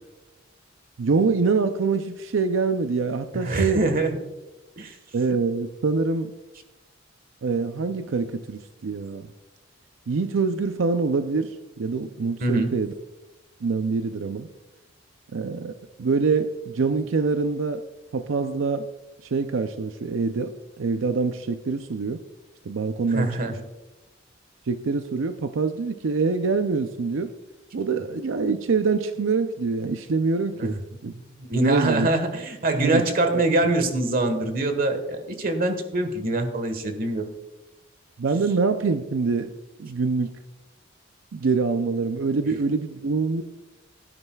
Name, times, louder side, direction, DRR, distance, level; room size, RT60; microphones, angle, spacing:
voice 1, 1.0-3.9 5.1-6.3 7.4-9.3 10.1-12.9 13.6-14.5 15.3-15.7 16.0-17.8 18.1-18.9 19.2-20.5 20.8-22.2 22.7-23.6 24.7-27.3 27.7-31.1 31.5-32.1 32.8-33.0 33.3-33.5 38.2-39.5 39.8-40.3 41.3-43.4, right 4 dB, 85° right, 8 dB, 0.5 m, -25 dB
voice 2, 3.3-4.2 4.8-5.0 12.4-12.7 23.1-23.5 30.6-30.7 31.4-37.2, right 2 dB, 50° right, 7 dB, 1.4 m, -24 dB
17.0 x 9.8 x 2.3 m, 1.1 s
head